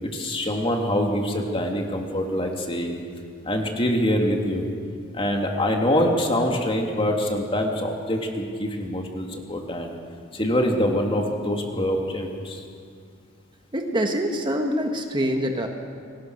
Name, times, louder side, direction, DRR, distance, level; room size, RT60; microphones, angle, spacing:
voice 1, 0.0-3.0 3.4-4.6 5.1-10.0 10.3-12.6, equal, 25° left, 1 dB, 3.1 m, -24 dB
voice 2, 13.7-15.7, equal, 25° right, 3 dB, 1.6 m, -25 dB
29.5 x 22.5 x 6.6 m, 2.2 s
head